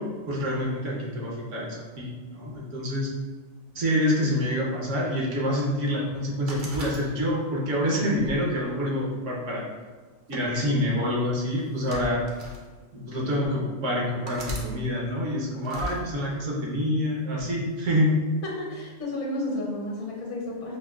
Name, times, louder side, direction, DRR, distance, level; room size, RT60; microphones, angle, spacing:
voice 1, 0.0-3.1 3.7-9.6 10.3-12.2 12.9-18.2, left 1 dB, 70° right, -3 dB, 1.1 m, -27 dB
sound 1, 6.5-7.5 8.2-9.3 10.3-10.6 11.6-12.6 13.3-13.4 14.2-14.7 15.6-16.0, equal, 50° right, 0.6 m, -37 dB
voice 2, 18.4-20.8, left 1 dB, 65° left, -2 dB, 1.0 m, -32 dB
5.2 x 2.2 x 2.3 m, 1.4 s
omnidirectional pair, 1.3 m